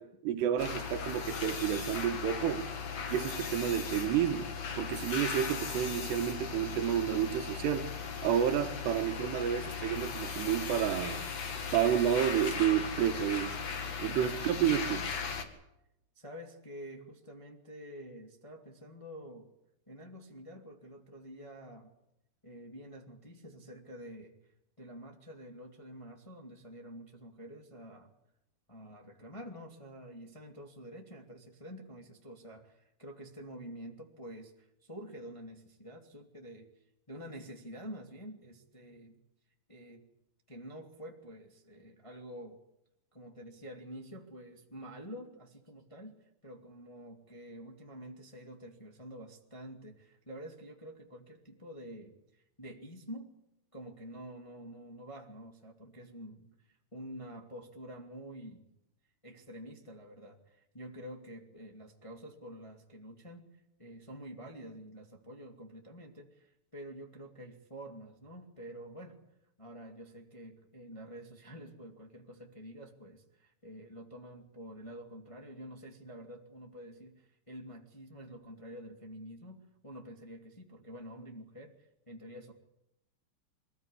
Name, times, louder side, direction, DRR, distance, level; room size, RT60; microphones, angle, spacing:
voice 1, 0.0-2.7 3.1-4.5 4.8-7.9 8.2-11.2 11.7-13.6 14.0-15.1, right 10 dB, 80° right, 8 dB, 3.3 m, -30 dB
sound 1, 0.6-15.4, left 6 dB, 45° left, 2.6 m, -38 dB
voice 2, 16.1-19.5 19.9-21.9 22.4-24.3 24.8-28.1 28.7-36.7 37.1-39.2 39.7-40.0 40.5-42.6 43.1-53.3 53.7-58.7 59.2-69.2 69.6-82.5, equal, 10° left, 1 dB, 1.6 m, -48 dB
24.0 x 15.0 x 10.0 m, 0.85 s
omnidirectional pair, 4.9 m